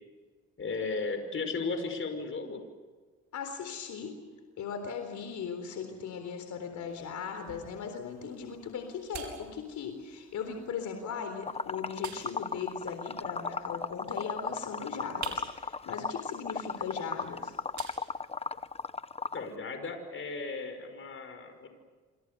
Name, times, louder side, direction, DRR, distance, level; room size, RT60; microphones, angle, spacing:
voice 1, 0.6-2.6 19.3-21.7, left 4 dB, 40° left, 6 dB, 5.8 m, -35 dB
voice 2, 3.3-4.2 4.6-17.5, left 6 dB, 70° left, 6 dB, 4.0 m, -38 dB
sound 1, 6.9-18.9, right 7 dB, 70° right, 5.4 m, -51 dB
Liquid, 11.5-19.5, left 4 dB, 20° left, 0.8 m, -35 dB
27.5 x 26.5 x 6.9 m, 1.4 s
cardioid pair, 90°, 30 cm